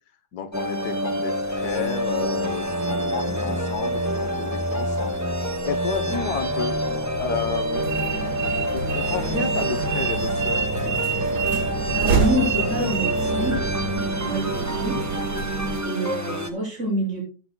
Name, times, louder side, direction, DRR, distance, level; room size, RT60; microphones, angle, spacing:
voice 1, 0.3-6.8 7.2-8.2 8.7-10.7, left 6 dB, 65° left, 7 dB, 1.5 m, -31 dB
sound 1, 0.5-16.5, equal, 20° right, 0.5 m, -27 dB
sound 2, 1.4-9.4, equal, 85° right, 5.2 m, -43 dB
sound 3, 7.7-15.8, right 6 dB, 65° right, 1.8 m, -27 dB
voice 2, 11.9-13.6 14.2-15.3 15.8-17.2, equal, 40° right, -2 dB, 6.4 m, -27 dB
13.5 x 9.0 x 2.2 m, 0.36 s
omnidirectional pair, 1.9 m